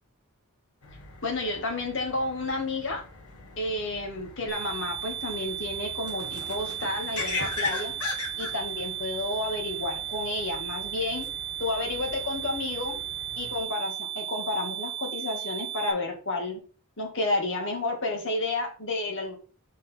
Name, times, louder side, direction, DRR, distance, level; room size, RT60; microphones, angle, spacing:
sound 1, 0.8-13.6, left 4 dB, 85° left, 1.5 m, -40 dB
voice 1, 1.2-3.0 3.6-7.9 8.4-11.2 11.6-13.0 13.4-16.6 17.0-19.3, left 2 dB, 55° left, 1 dB, 2.0 m, -31 dB
sound 2, 4.5-15.9, right 10 dB, 25° left, 2.8 m, -35 dB
5.1 x 4.5 x 5.7 m, 0.38 s
head